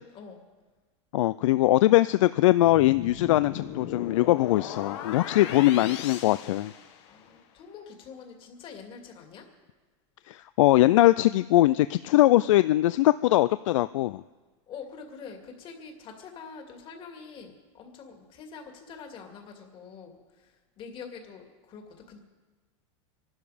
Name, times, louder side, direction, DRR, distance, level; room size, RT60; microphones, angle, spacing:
voice 1, 1.1-6.7 10.3-14.2, left 15 dB, 85° left, 15 dB, 0.4 m, -21 dB
sound 1, 2.6-7.4, left 8 dB, 60° left, 1.7 m, -38 dB
voice 2, 5.3-6.0 7.1-9.5 14.7-22.2, left 6 dB, 35° left, 3 dB, 2.4 m, -45 dB
24.0 x 12.0 x 5.0 m, 1.3 s
supercardioid pair, 145°, 16 cm